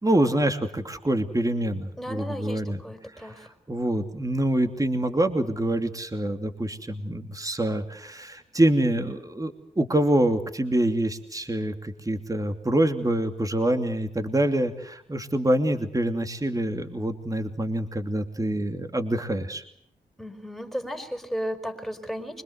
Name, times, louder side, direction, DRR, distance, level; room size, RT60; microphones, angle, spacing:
voice 1, 0.0-19.6, right 1 dB, 20° right, 7 dB, 2.8 m, -26 dB
voice 2, 2.0-3.5 20.2-22.4, equal, ahead, 9 dB, 4.9 m, -34 dB
25.0 x 22.0 x 8.0 m, 0.69 s
cardioid pair, 50°, 16 cm